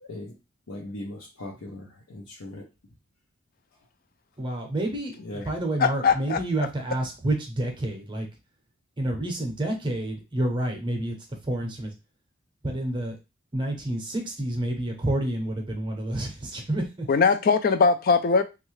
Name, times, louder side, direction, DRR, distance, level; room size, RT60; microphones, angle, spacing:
voice 1, 0.0-0.3 0.7-2.6 5.2-5.5, left 1 dB, 85° left, 0.7 m, -39 dB
voice 2, 4.4-8.3 9.0-11.2 11.4-11.9 12.6-13.2 13.5-17.1, right 1 dB, 25° right, 0.7 m, -29 dB
voice 3, 5.8-6.4 17.1-18.4, left 5 dB, 45° left, 0.3 m, -20 dB
3.1 x 2.4 x 3.1 m
head